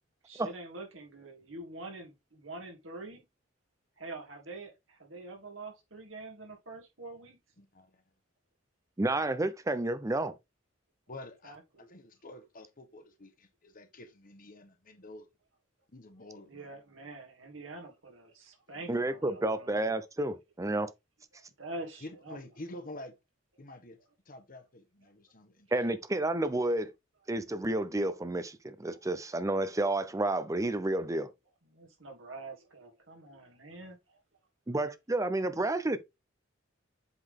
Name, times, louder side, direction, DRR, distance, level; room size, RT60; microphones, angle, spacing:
voice 1, 0.2-3.2 4.0-7.4 11.4-11.9 16.5-19.9 21.6-22.4 28.9-29.0 31.7-34.0 34.7-34.8, right 2 dB, 80° right, 2.5 m, -45 dB
voice 2, 7.6-8.0 11.1-15.3 15.9-16.7 18.7-19.0 22.0-23.2 23.6-24.0 24.2-25.7, left 1 dB, 45° left, 1.3 m, -48 dB
voice 3, 9.0-10.3 18.9-20.9 25.7-26.9 27.3-31.3 34.7-36.0, right 2 dB, 15° right, 0.6 m, -30 dB
7.9 x 3.9 x 3.7 m
head